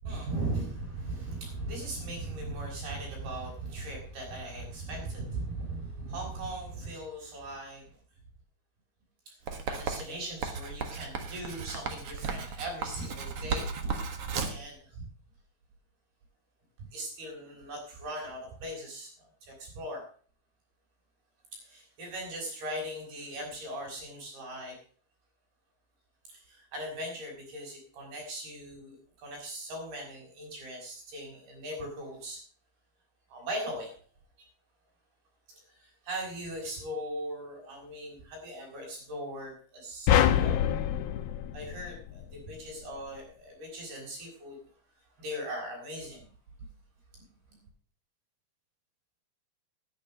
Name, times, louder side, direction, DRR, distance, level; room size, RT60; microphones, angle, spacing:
voice 1, 0.0-7.9 9.3-14.0 14.4-15.1 16.9-20.0 21.6-24.8 26.3-32.4 33.3-33.9 35.5-40.7 41.5-44.6 45.2-46.3 47.1-47.2 47.5-47.6, right 1 dB, 90° right, 0 dB, 7.8 m, -39 dB
Writing, 9.5-14.7, right 5 dB, 50° right, 1.9 m, -35 dB
sound 1, 40.1-42.5, left 10 dB, 80° left, 2.6 m, -26 dB
11.0 x 10.0 x 6.4 m, 0.44 s
omnidirectional pair, 4.3 m